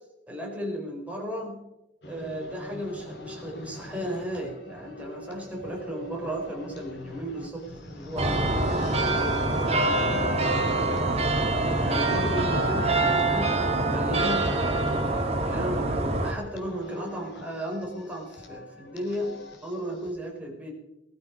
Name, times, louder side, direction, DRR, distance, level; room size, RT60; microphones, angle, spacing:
voice 1, 0.3-1.6 2.1-10.3 11.8-13.5 13.9-14.9 15.4-19.4 19.6-20.7, equal, 10° right, -2 dB, 4.8 m, -34 dB
sound 1, 2.0-20.1, left 1 dB, 65° left, 2.9 m, -41 dB
sound 2, 8.2-16.3, right 2 dB, 35° right, 2.2 m, -25 dB
19.5 x 13.0 x 5.2 m, 0.91 s
head